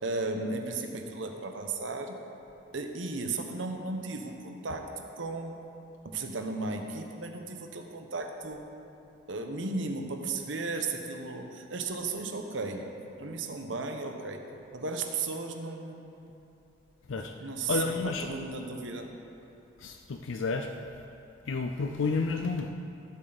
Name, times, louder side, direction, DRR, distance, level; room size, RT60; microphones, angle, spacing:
voice 1, 0.0-2.2 2.7-5.6 6.0-8.6 9.3-12.9 13.2-14.4 14.7-16.1 17.1-19.1, right 3 dB, 75° right, 4 dB, 1.0 m, -35 dB
voice 2, 17.7-18.3 19.8-20.7 21.5-22.7, left 4 dB, 80° left, 5 dB, 0.5 m, -30 dB
15.5 x 7.6 x 4.1 m, 2.7 s
head